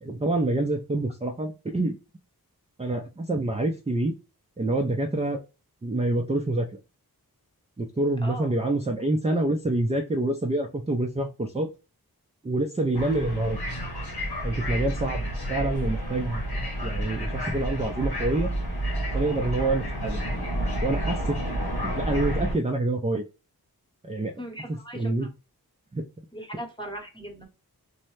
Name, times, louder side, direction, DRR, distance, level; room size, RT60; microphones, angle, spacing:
voice 1, 0.0-1.9 2.8-4.1 4.6-5.4 5.8-6.8 7.8-11.7 12.4-13.6 14.4-16.4 16.8-18.5 19.1-20.2 20.8-21.6 21.8-23.2 24.0-24.3 24.9-25.3 25.9-26.0, right 2 dB, 15° right, 2 dB, 0.4 m, -27 dB
voice 2, 8.2-8.5 15.6-15.8 24.4-25.3 26.3-27.5, right 1 dB, 15° left, 2 dB, 0.9 m, -39 dB
sound 1, 12.9-22.6, right 1 dB, 90° left, 1.1 m, -30 dB
2.7 x 2.1 x 3.1 m, 0.30 s
wide cardioid pair, 40°, 38 cm